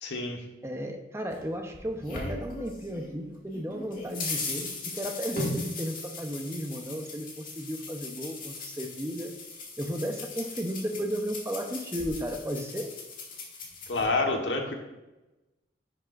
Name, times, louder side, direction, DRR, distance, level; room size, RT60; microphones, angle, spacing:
voice 1, 0.0-0.4 13.9-14.7, left 3 dB, 90° left, 2 dB, 1.3 m, -28 dB
voice 2, 0.6-9.3 9.8-12.9, equal, 15° right, 4 dB, 0.7 m, -34 dB
sound 1, 1.3-3.2 3.5-14.0, left 2 dB, 50° left, 2.0 m, -38 dB
10.5 x 7.0 x 2.5 m, 1.1 s
head